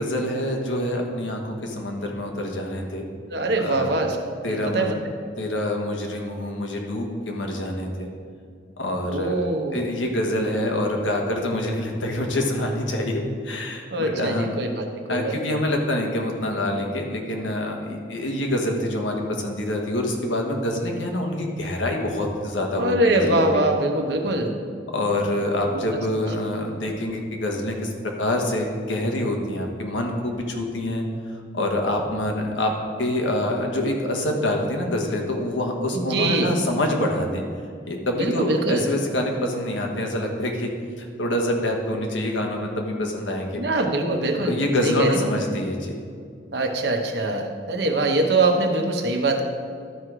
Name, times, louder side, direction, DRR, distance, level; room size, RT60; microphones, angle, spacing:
voice 1, 0.0-3.0 3.6-4.0 4.4-4.9 5.4-8.1 8.8-9.4 9.7-14.5 15.1-23.6 24.9-27.9 28.2-31.0 31.5-32.7 33.0-37.4 37.9-40.7 41.0-43.6 44.4-46.1, left 1 dB, 90° left, 1 dB, 1.3 m, -26 dB
voice 2, 3.3-4.2 4.5-4.9 9.1-9.8 13.9-15.6 22.8-24.6 25.7-26.0 35.9-36.5 38.2-38.9 43.6-44.5 44.8-45.2 46.5-49.4, right 2 dB, 60° right, 4 dB, 0.9 m, -23 dB
12.0 x 4.6 x 5.0 m, 2.2 s
head